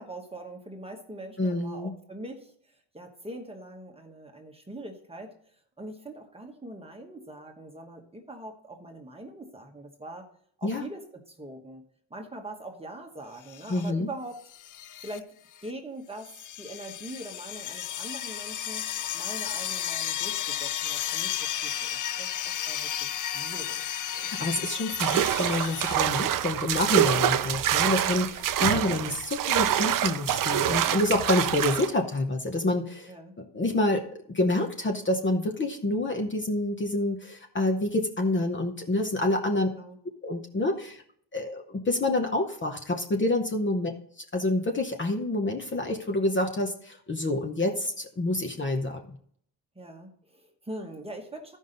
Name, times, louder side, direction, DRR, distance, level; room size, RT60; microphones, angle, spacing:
voice 1, 0.0-10.3 10.6-14.4 15.0-15.3 15.6-16.3 16.6-24.0 28.0-28.2 33.1-33.3 39.6-40.0 43.7-43.9 49.7-51.6, right 1 dB, 15° right, 3 dB, 1.1 m, -43 dB
voice 2, 1.4-1.9 10.6-10.8 13.7-14.1 24.1-28.3 28.6-33.1 33.5-34.0 34.3-39.7 40.2-41.0 41.3-43.9 44.3-49.0, left 2 dB, 25° left, 3 dB, 0.8 m, -27 dB
sound 1, 13.5-13.9 14.5-15.2 15.6-15.7 16.2-26.0, left 10 dB, 45° left, 0.4 m, -33 dB
sound 2, 25.0-31.9, right 11 dB, 50° right, 0.5 m, -26 dB
14.5 x 5.5 x 3.9 m, 0.62 s
wide cardioid pair, 180°, 43 cm